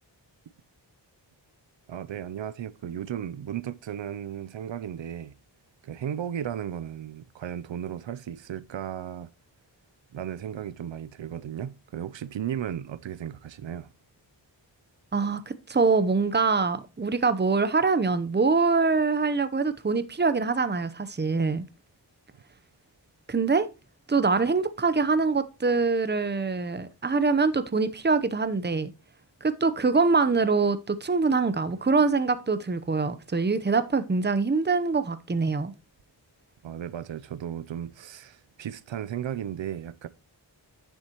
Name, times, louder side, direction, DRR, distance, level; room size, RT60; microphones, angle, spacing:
voice 1, 1.9-5.3 5.8-9.3 10.1-13.9 36.6-40.1, right 9 dB, 85° right, 0.6 m, -35 dB
voice 2, 15.1-21.7 23.3-23.7 24.1-28.9 29.4-35.7, right 4 dB, 25° right, 0.8 m, -24 dB
10.0 x 7.2 x 3.0 m
wide cardioid pair, 65°, 43 cm